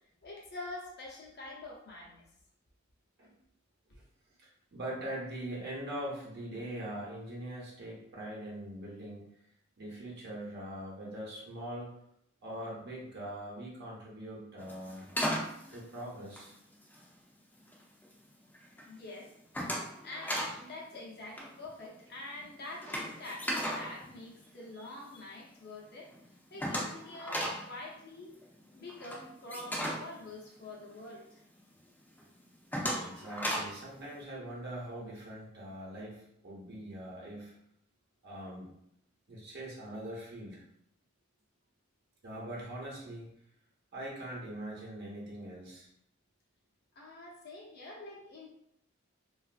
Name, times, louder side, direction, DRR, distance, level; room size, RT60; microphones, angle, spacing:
voice 1, 0.2-2.2 18.8-19.3 20.0-26.1 26.5-28.3 28.7-31.4 46.9-48.5, left 2 dB, 55° left, -2 dB, 0.8 m, -46 dB
voice 2, 4.4-9.3 9.8-11.9 12.4-15.0 15.7-16.5 22.9-23.0 24.7-24.9 32.9-37.5 38.2-38.7 39.3-40.6 42.2-43.3 43.9-45.9, right 1 dB, 55° right, -4 dB, 0.8 m, -42 dB
sound 1, 14.6-17.1 17.6-18.1 18.5-18.9 19.1-20.6 20.9-21.0 21.3-25.0 25.4-25.5 25.8-25.9 26.1-31.2 31.6-31.7 32.2-33.8, equal, 10° left, 0.6 m, -36 dB
3.1 x 2.4 x 2.4 m, 0.74 s
head